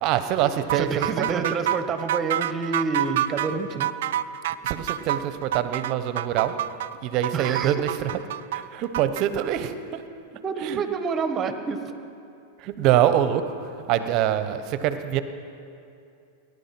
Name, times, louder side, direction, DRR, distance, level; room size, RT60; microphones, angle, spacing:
voice 1, 0.0-1.5 4.6-6.5 7.0-8.1 8.5-10.0 10.6-10.8 12.6-13.5 13.9-15.2, right 11 dB, 50° right, 11 dB, 1.0 m, -24 dB
voice 2, 0.7-3.9 7.3-7.7 10.4-11.8, right 4 dB, 30° right, 8 dB, 1.4 m, -28 dB
sound 1, 0.7-9.3, right 12 dB, 70° right, 0.5 m, -28 dB
19.0 x 11.0 x 5.9 m, 2.6 s
hypercardioid pair, 100°, 0 cm